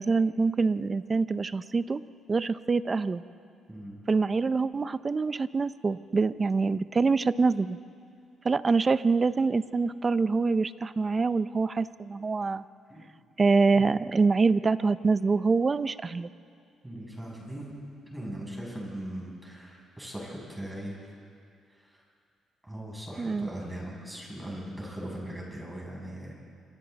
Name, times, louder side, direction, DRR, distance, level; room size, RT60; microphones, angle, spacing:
voice 1, 0.0-2.0 2.3-3.2 4.1-7.8 8.4-12.6 13.4-16.3 23.2-23.5, right 4 dB, 30° right, 15 dB, 0.6 m, -25 dB
voice 2, 16.8-17.7 18.1-21.1 21.8-22.0 22.6-26.3, right 1 dB, 10° right, -3 dB, 7.5 m, -39 dB
27.5 x 25.0 x 4.1 m, 2.4 s
cardioid pair, 90°, 0 cm